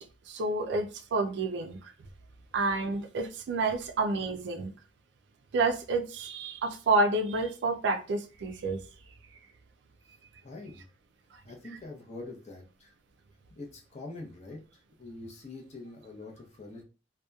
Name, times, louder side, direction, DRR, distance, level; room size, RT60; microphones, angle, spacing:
voice 1, 0.3-1.9 2.5-4.7 5.5-8.8, right 3 dB, 70° right, 0.4 m, -29 dB
voice 2, 10.4-10.9 11.4-12.9 13.5-14.6 15.0-16.8, left 2 dB, 40° left, 0.6 m, -44 dB
2.8 x 2.2 x 2.2 m
head